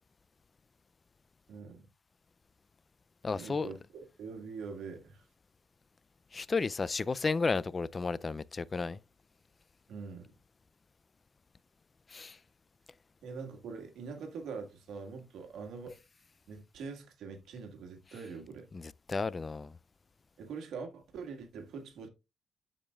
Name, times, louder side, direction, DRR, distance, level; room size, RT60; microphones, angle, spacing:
voice 1, 1.5-1.8 3.3-5.3 9.9-10.3 13.2-16.0 16.5-18.7 20.4-22.1, right 5 dB, 75° right, 1.7 m, -44 dB
voice 2, 3.2-3.7 6.3-9.0 12.1-12.4 18.7-19.8, left 4 dB, 30° left, 0.4 m, -33 dB
12.5 x 5.1 x 2.4 m
cardioid pair, 90°, 0 cm